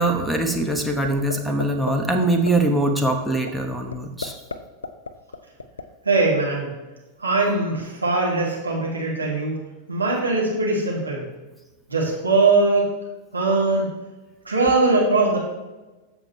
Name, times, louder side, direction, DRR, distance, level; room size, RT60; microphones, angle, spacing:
voice 1, 0.0-4.4, right 2 dB, ahead, 1 dB, 1.2 m, -22 dB
sound 1, 1.1-1.4 1.6-1.9 2.2-2.5 2.9-3.1 3.5-3.6 3.9-4.6 4.8-5.8, left 4 dB, 80° left, 0.5 m, -30 dB
voice 2, 6.0-6.7 7.2-9.6 9.9-11.2 11.9-12.9 13.3-13.9 14.4-15.4, right 3 dB, 85° right, -4 dB, 2.7 m, -21 dB
14.0 x 5.4 x 3.2 m, 1.1 s
figure-of-eight pair, 90°, 0 cm